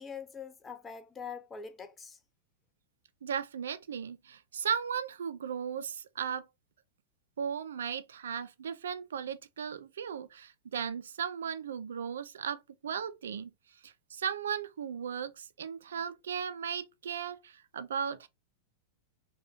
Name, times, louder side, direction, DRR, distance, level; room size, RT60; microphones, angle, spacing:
voice 1, 0.0-2.2, left 6 dB, 20° left, 0.6 m, -43 dB
voice 2, 3.2-6.5 7.4-13.5 13.8-18.3, right 7 dB, 85° right, 0.3 m, -36 dB
2.7 x 2.2 x 3.3 m
hypercardioid pair, 120°, 0 cm